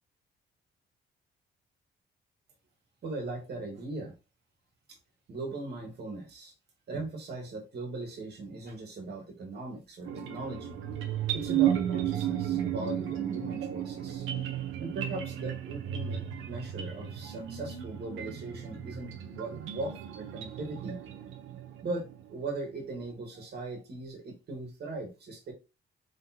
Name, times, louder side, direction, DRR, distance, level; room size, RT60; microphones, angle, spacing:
voice 1, 3.0-4.1 4.9-5.0 5.3-6.5 6.9-10.7 11.3-14.3 14.8-21.0 21.8-25.5, right 2 dB, 55° right, 2 dB, 1.6 m, -39 dB
sound 1, 10.1-22.2, right 10 dB, 85° right, 0.9 m, -34 dB
3.9 x 3.6 x 2.8 m, 0.28 s
cardioid pair, 90°, 20 cm